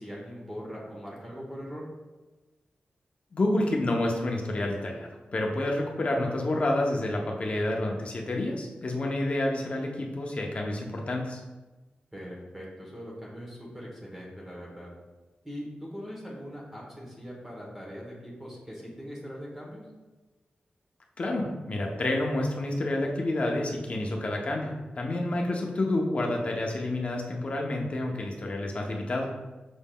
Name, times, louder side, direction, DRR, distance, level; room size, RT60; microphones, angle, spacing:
voice 1, 0.0-1.9 12.1-14.9 15.4-19.8, equal, 10° right, -4 dB, 0.9 m, -41 dB
voice 2, 3.3-11.4 21.2-29.3, left 1 dB, 40° left, 0 dB, 0.6 m, -29 dB
6.0 x 3.6 x 2.2 m, 1.2 s
wide cardioid pair, 165°, 3 cm